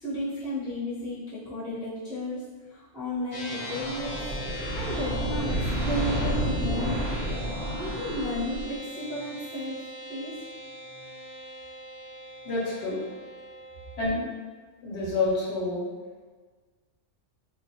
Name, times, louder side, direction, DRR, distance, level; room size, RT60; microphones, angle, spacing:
voice 1, 0.0-2.4 2.7-4.3 4.7-7.0 7.7-9.8 10.1-10.5, left 1 dB, 5° right, -12 dB, 0.5 m, -33 dB
sound 1, 3.3-14.1, equal, 35° left, 0.7 m, -40 dB
sound 2, 3.4-8.9, equal, 60° right, 0.7 m, -30 dB
voice 2, 12.4-13.0 14.0-14.2 14.8-15.8, left 2 dB, 65° left, -6 dB, 0.9 m, -28 dB
2.2 x 2.0 x 2.8 m, 1.4 s
omnidirectional pair, 1.3 m